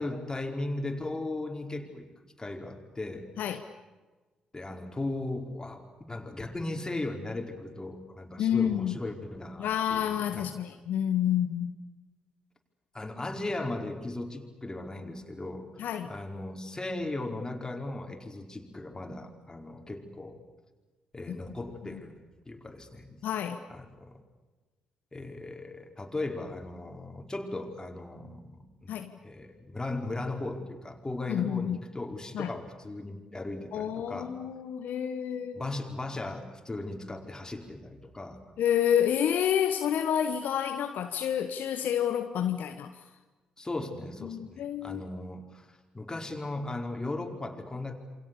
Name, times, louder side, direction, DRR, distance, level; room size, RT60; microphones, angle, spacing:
voice 1, 0.0-3.6 4.5-10.5 12.9-15.8 16.0-20.4 21.1-23.2 23.7-24.2 25.1-28.9 29.2-34.4 35.5-38.4 43.6-47.9, left 2 dB, 20° left, 3 dB, 5.0 m, -37 dB
voice 2, 8.4-9.0 9.6-11.8 15.8-16.1 21.3-21.4 21.9-22.0 23.2-23.6 28.9-29.1 31.3-31.8 32.3-32.5 33.7-35.7 38.6-43.0 44.2-45.0, left 9 dB, 65° left, 8 dB, 1.2 m, -29 dB
28.5 x 25.5 x 7.1 m, 1.2 s
figure-of-eight pair, 40°, 3 cm